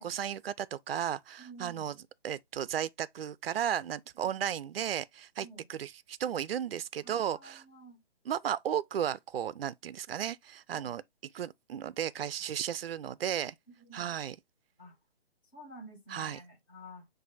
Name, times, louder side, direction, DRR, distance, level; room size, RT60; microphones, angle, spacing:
voice 1, 0.0-1.9 2.2-7.6 8.3-11.0 11.3-13.5 13.9-14.4 16.1-16.4, right 9 dB, 65° right, 0.5 m, -34 dB
voice 2, 1.4-1.9 5.4-5.6 7.0-8.0 10.7-11.0 13.8-14.1 14.8-15.0 15.5-17.1, equal, 10° left, 0.7 m, -51 dB
6.0 x 2.6 x 2.6 m
hypercardioid pair, 165°, 31 cm